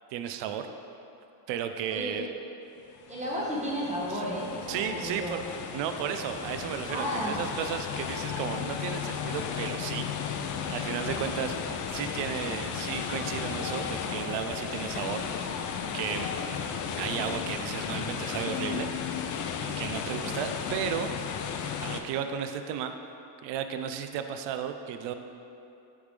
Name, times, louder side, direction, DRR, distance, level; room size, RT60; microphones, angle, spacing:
voice 1, 0.1-0.7 1.5-2.3 4.1-4.2 4.7-5.4 5.7-10.1 10.4-15.6 15.9-16.3 17.0-18.9 19.3-19.4 19.8-21.1 21.8-22.9 23.4-25.1, right 8 dB, 65° right, 8 dB, 0.5 m, -34 dB
voice 2, 1.9-2.2 3.1-5.4 6.9-7.3, equal, 15° right, -5 dB, 1.3 m, -33 dB
sound 1, 3.0-22.0, left 7 dB, 45° left, 0.4 m, -34 dB
8.6 x 3.6 x 3.3 m, 2.8 s
cardioid pair, 115°, 46 cm